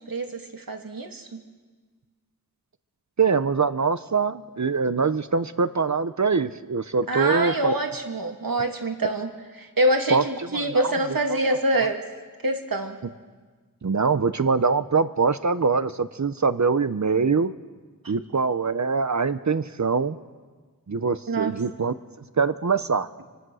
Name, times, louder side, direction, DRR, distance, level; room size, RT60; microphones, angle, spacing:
voice 1, 0.0-1.4 7.1-9.3 9.6-12.0 12.4-13.0 21.3-21.5, right 1 dB, 75° right, 4 dB, 2.5 m, -25 dB
voice 2, 3.2-7.7 10.1-10.2 10.5-10.9 11.8-11.9 13.8-17.5 18.1-20.2 20.9-21.9 22.4-23.1, right 5 dB, 55° right, 12 dB, 0.8 m, -23 dB
26.5 x 25.0 x 6.4 m, 1.4 s
wide cardioid pair, 70°, 35 cm